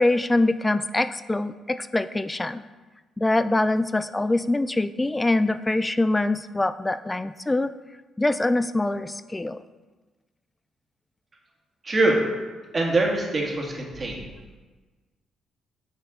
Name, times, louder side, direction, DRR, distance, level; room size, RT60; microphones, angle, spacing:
voice 1, 0.0-2.6 3.2-7.7 8.2-9.6, left 2 dB, 15° left, 14 dB, 0.3 m, -24 dB
voice 2, 11.8-12.2 12.7-14.3, right 2 dB, 30° right, -1 dB, 1.9 m, -23 dB
9.0 x 5.6 x 3.8 m, 1.3 s
cardioid pair, 90°, 0 cm